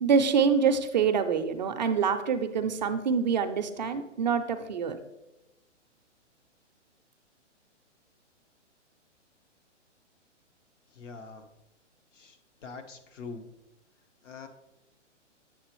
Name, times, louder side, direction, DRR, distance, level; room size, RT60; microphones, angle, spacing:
voice 1, 0.0-5.0, right 6 dB, 40° right, 8 dB, 0.4 m, -26 dB
voice 2, 10.9-11.5 12.1-13.5 14.2-14.5, left 4 dB, 80° left, 6 dB, 1.1 m, -44 dB
7.5 x 6.7 x 3.0 m, 0.99 s
hypercardioid pair, 145°, 37 cm